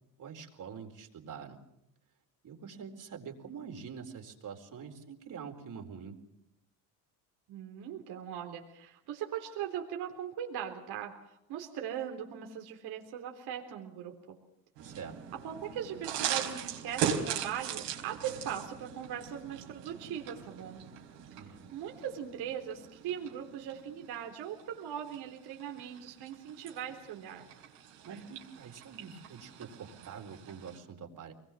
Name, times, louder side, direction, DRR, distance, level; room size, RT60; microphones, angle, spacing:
voice 1, 0.2-1.6 2.4-6.2 14.8-15.2 21.4-21.6 28.0-31.3, right 6 dB, 50° right, 3 dB, 4.5 m, -45 dB
voice 2, 7.5-14.4 15.4-20.8 21.5-27.5, right 9 dB, 65° right, 2 dB, 3.8 m, -40 dB
sound 1, 14.8-30.8, right 8 dB, 90° right, 4.2 m, -40 dB
24.5 x 20.5 x 7.5 m, 0.81 s
supercardioid pair, 90°, 41 cm